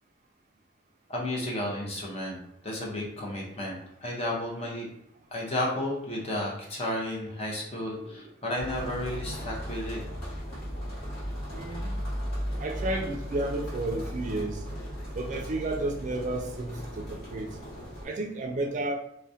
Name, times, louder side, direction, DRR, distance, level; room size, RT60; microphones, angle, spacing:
voice 1, 1.1-2.4 2.6-4.9 5.3-10.0, left 1 dB, 30° left, -2 dB, 0.6 m, -32 dB
sound 1, 8.6-18.0, equal, 50° left, 1.2 m, -36 dB
voice 2, 11.5-11.9 12.6-14.6 15.1-17.6 18.0-19.0, right 2 dB, 40° right, 3 dB, 0.3 m, -32 dB
2.3 x 2.1 x 2.6 m, 0.78 s
head